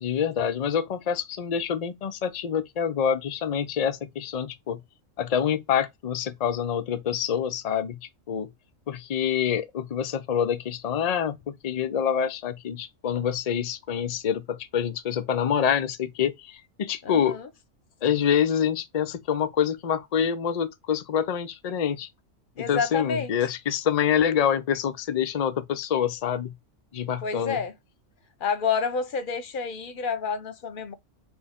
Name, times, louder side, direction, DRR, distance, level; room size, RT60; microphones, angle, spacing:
voice 1, 0.0-4.8 5.2-8.0 8.3-8.5 8.9-17.4 18.0-22.1 22.7-26.5 26.9-27.6, left 8 dB, 90° left, 0.3 m, -26 dB
voice 2, 17.0-17.5 22.6-23.3 27.2-27.7 28.4-30.9, left 6 dB, 50° left, 0.7 m, -29 dB
4.4 x 3.1 x 3.5 m
omnidirectional pair, 1.4 m